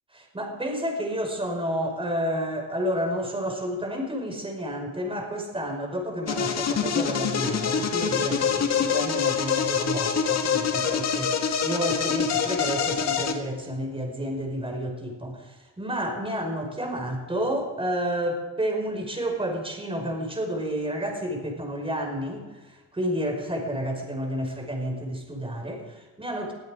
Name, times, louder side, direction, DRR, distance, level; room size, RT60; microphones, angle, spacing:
voice 1, 0.1-26.5, equal, 20° right, 3 dB, 5.2 m, -30 dB
sound 1, 6.3-13.3, left 7 dB, 60° left, 1.9 m, -25 dB
21.0 x 12.5 x 5.0 m, 1.2 s
cardioid pair, 90°, 30 cm